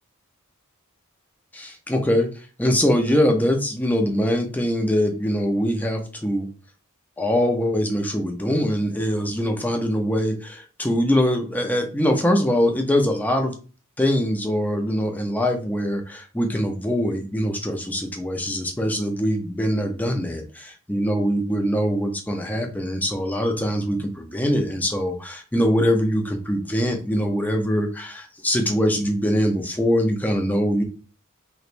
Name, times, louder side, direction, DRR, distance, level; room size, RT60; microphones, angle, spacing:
voice 1, 1.5-2.3 2.6-6.5 7.2-13.5 14.0-30.8, equal, 10° left, 3 dB, 0.6 m, -23 dB
3.2 x 3.1 x 2.5 m, 0.35 s
head